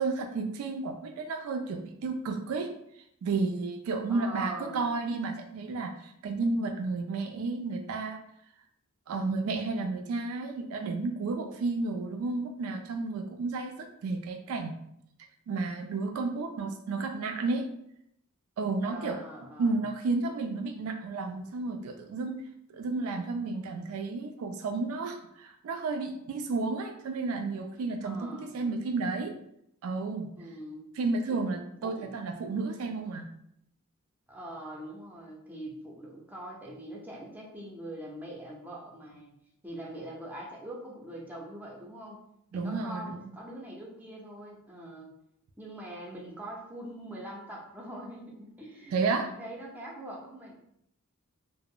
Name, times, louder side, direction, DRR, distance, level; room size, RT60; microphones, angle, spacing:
voice 1, 0.0-2.7 3.2-8.2 9.1-14.7 15.5-17.7 18.6-19.2 19.6-22.4 22.7-29.3 29.8-30.3 31.0-33.3 42.5-43.3 48.9-49.2, right 3 dB, 70° right, 5 dB, 0.3 m, -32 dB
voice 2, 4.1-4.9 18.8-19.8 28.0-28.6 30.4-30.9 31.3-31.4 31.8-32.1 34.3-39.3 39.6-42.2 42.5-45.1 45.6-50.6, right 1 dB, 10° right, -3 dB, 0.5 m, -43 dB
2.4 x 2.0 x 3.5 m, 0.76 s
head